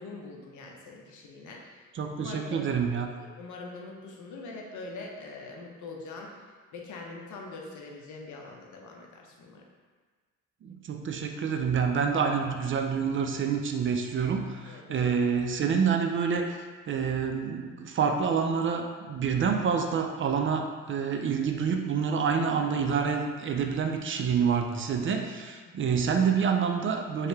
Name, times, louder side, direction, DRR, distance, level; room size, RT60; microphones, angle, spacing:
voice 1, 0.0-1.8 2.1-2.7 3.2-6.4 6.7-9.6 14.7-15.1 25.6-25.9, left 3 dB, 75° left, 0 dB, 0.8 m, -43 dB
voice 2, 2.0-3.1 10.6-16.5 16.9-27.3, right 6 dB, 40° right, 4 dB, 0.5 m, -27 dB
3.2 x 2.8 x 4.5 m, 1.5 s
cardioid pair, 90°, 30 cm